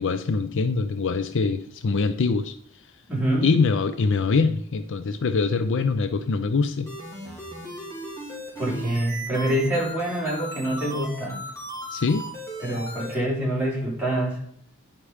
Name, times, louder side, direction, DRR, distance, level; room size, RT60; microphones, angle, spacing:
voice 1, 0.0-2.5 3.4-6.9 11.9-12.3, left 4 dB, 60° left, 11 dB, 0.5 m, -23 dB
voice 2, 3.1-3.5 8.6-11.4 12.6-14.4, right 1 dB, 5° right, -6 dB, 4.1 m, -26 dB
sound 1, 6.9-13.1, equal, 15° left, 3.2 m, -37 dB
10.0 x 5.9 x 4.8 m, 0.67 s
head